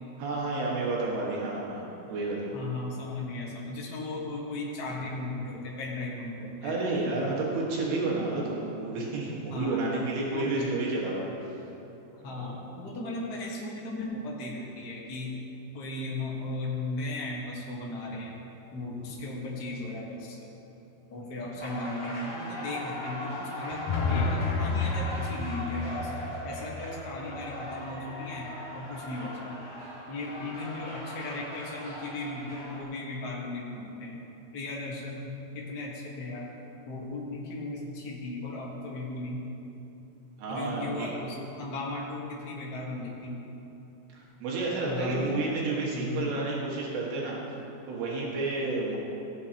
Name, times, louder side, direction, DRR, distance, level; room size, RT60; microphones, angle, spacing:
voice 1, 0.2-2.5 6.6-11.3 12.2-12.6 40.4-41.1 44.1-47.4 47.9-49.0, right 3 dB, 85° right, -4 dB, 3.7 m, -31 dB
voice 2, 2.5-6.8 9.5-10.8 12.2-15.4 15.7-18.3 18.7-20.5 21.1-28.5 28.7-29.6 30.1-34.2 34.5-36.5 36.9-39.4 40.5-43.4 44.8-45.4 45.8-46.2, left 2 dB, 70° left, -4 dB, 0.9 m, -36 dB
sound 1, 21.6-32.8, left 1 dB, 20° left, 1.2 m, -39 dB
sound 2, 23.7-27.8, left 4 dB, 85° left, 1.7 m, -31 dB
16.5 x 9.5 x 2.9 m, 3.0 s
omnidirectional pair, 4.4 m